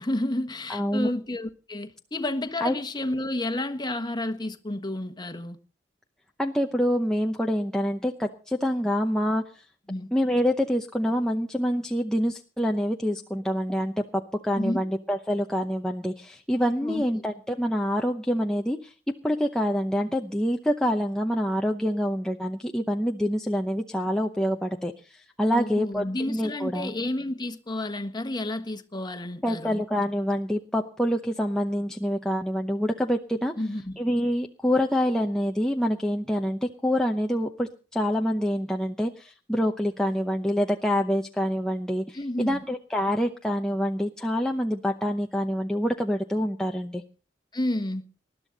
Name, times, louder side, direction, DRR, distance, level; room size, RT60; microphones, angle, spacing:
voice 1, 0.0-5.6 9.9-10.1 14.5-14.8 16.8-17.0 25.5-29.8 33.6-34.0 42.1-42.6 47.5-48.0, left 1 dB, 25° left, 1.3 m, -30 dB
voice 2, 0.7-1.1 2.6-2.7 6.4-9.4 10.1-18.9 19.2-26.9 29.4-33.5 34.0-42.2 42.5-47.0, equal, 5° left, 0.8 m, -26 dB
20.5 x 12.0 x 4.0 m
head